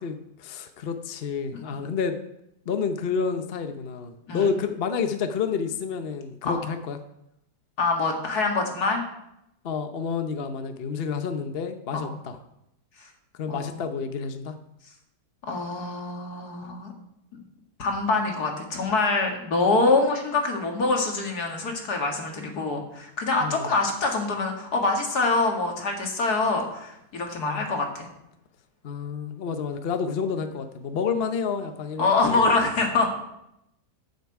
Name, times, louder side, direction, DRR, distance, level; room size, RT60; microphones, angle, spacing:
voice 1, 0.0-2.2 2.7-7.0 9.6-12.4 13.3-14.6 23.4-23.7 27.3-27.7 28.8-32.5, left 6 dB, 50° left, 8 dB, 0.8 m, -29 dB
voice 2, 7.8-9.0 11.9-12.1 13.0-13.1 13.5-13.7 15.5-16.9 17.8-28.1 32.0-33.1, left 3 dB, 65° left, 2 dB, 2.4 m, -25 dB
15.0 x 6.8 x 4.7 m, 0.82 s
omnidirectional pair, 1.8 m